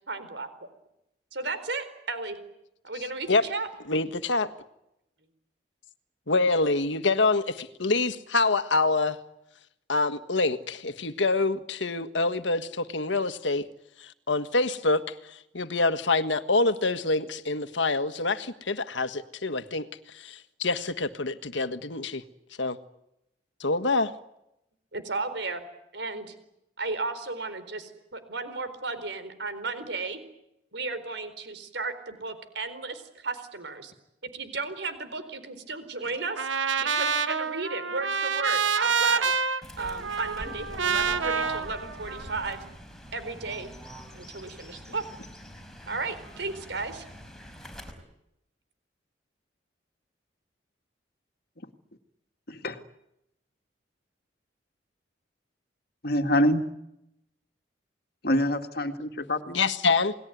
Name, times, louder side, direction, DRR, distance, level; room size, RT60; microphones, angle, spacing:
voice 1, 0.1-0.5 1.3-2.4 2.8-3.7 24.9-25.6 25.9-26.3 26.8-30.2 30.7-33.9 34.2-36.5 36.8-39.3 39.8-42.6 43.1-43.7 44.1-45.0 45.9-47.1, right 3 dB, 65° right, 11 dB, 4.3 m, -34 dB
voice 2, 3.9-4.5 6.3-9.2 9.9-13.7 14.0-15.0 15.5-19.9 20.1-22.2 22.6-22.8 23.6-24.1 59.5-60.1, left 3 dB, 75° left, 10 dB, 1.6 m, -26 dB
Trumpet, 36.4-42.6, right 6 dB, 90° right, 1.4 m, -28 dB
Fowl / Bird, 39.6-47.9, equal, 5° left, 4.9 m, -44 dB
voice 3, 56.0-56.7 58.2-59.7, left 1 dB, 55° left, 7 dB, 2.1 m, -26 dB
29.0 x 20.0 x 9.4 m, 0.83 s
head